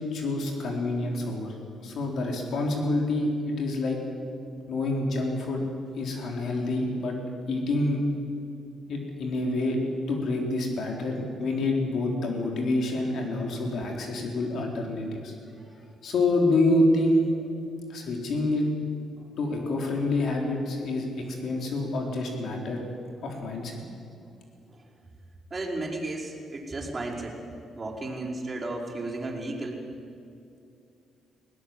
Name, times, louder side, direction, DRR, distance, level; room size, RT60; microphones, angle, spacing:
voice 1, 0.0-1.5 1.8-4.0 4.7-5.6 6.0-7.2 7.5-8.0 8.9-9.8 10.1-15.3 16.0-17.5 17.9-18.7 19.4-22.8 23.2-23.8, left 2 dB, 65° left, 1 dB, 4.0 m, -27 dB
voice 2, 25.5-27.3 27.7-29.8, right 2 dB, 25° right, -6 dB, 5.2 m, -34 dB
20.5 x 17.5 x 7.7 m, 2.5 s
cardioid pair, 90°, 0 cm